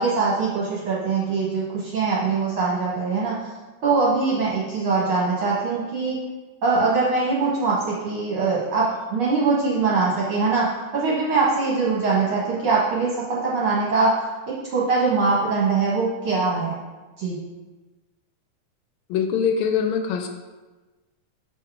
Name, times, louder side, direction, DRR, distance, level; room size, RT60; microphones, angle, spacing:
voice 1, 0.0-3.5 3.8-6.2 6.6-10.7 10.9-14.1 14.5-16.7 17.2-17.4, right 4 dB, 55° right, -6 dB, 1.6 m, -22 dB
voice 2, 19.1-20.3, left 7 dB, 80° left, 5 dB, 1.7 m, -23 dB
7.0 x 4.6 x 4.7 m, 1.2 s
omnidirectional pair, 3.5 m